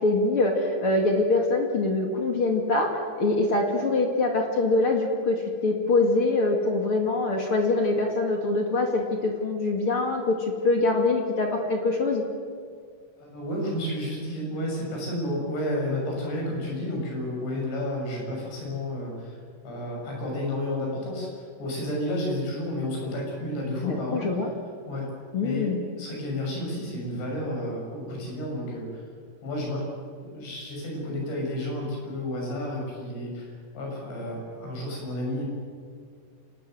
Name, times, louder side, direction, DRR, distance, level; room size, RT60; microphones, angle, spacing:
voice 1, 0.0-2.9 3.2-12.2 23.8-24.5 25.3-25.8, left 2 dB, 40° left, 2 dB, 2.0 m, -24 dB
voice 2, 13.2-19.4 19.6-21.3 21.6-24.3 24.9-25.1 25.4-29.0 29.4-29.9 30.2-35.5, left 1 dB, 70° left, -1 dB, 8.8 m, -31 dB
27.0 x 19.0 x 7.8 m, 2.1 s
omnidirectional pair, 5.3 m